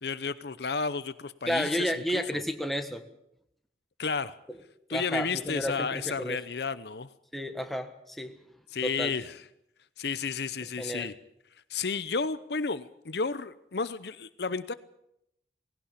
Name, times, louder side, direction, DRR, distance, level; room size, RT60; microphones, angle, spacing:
voice 1, 0.0-2.4 4.0-4.4 4.9-7.1 8.7-9.5 10.0-11.2 11.7-14.7, left 5 dB, 65° left, 15 dB, 0.8 m, -32 dB
voice 2, 1.5-3.0 4.9-6.4 7.3-8.4 8.8-9.1 10.8-11.1, equal, ahead, 6 dB, 1.5 m, -32 dB
18.5 x 17.5 x 8.3 m, 0.78 s
head